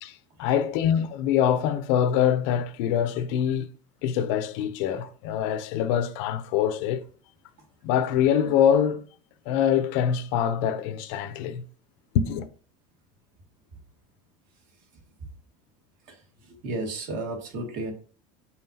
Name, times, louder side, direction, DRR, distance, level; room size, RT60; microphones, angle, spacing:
voice 1, 0.0-3.7 4.0-7.0 7.8-9.0 9.5-11.6 12.1-12.5, left 9 dB, 65° left, 0.7 m, -24 dB
voice 2, 16.5-17.9, right 2 dB, 50° right, 1.9 m, -33 dB
5.8 x 5.7 x 2.8 m
cardioid pair, 160°, 18 cm